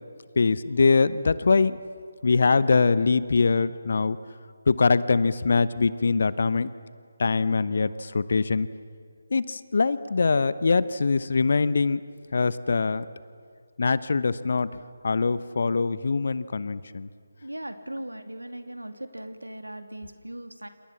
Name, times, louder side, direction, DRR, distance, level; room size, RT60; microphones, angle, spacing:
voice 1, 0.4-1.8 2.2-4.2 4.7-6.7 7.2-8.7 9.3-12.0 12.3-13.0 13.8-14.7 15.0-17.1, left 4 dB, 50° left, 16 dB, 0.9 m, -23 dB
voice 2, 17.4-20.7, right 1 dB, 85° right, 8 dB, 2.3 m, -38 dB
29.0 x 28.0 x 7.3 m, 2.2 s
figure-of-eight pair, 155°, 0 cm